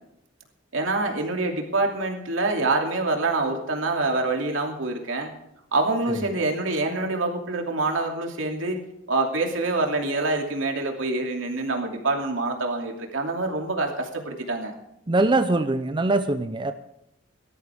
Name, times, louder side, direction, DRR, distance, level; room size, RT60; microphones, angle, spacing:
voice 1, 0.7-5.3 5.7-8.8 9.1-14.7, right 2 dB, 80° right, 2 dB, 2.8 m, -26 dB
voice 2, 15.1-16.7, right 2 dB, 25° right, 9 dB, 0.6 m, -22 dB
17.5 x 13.0 x 3.6 m, 0.81 s
head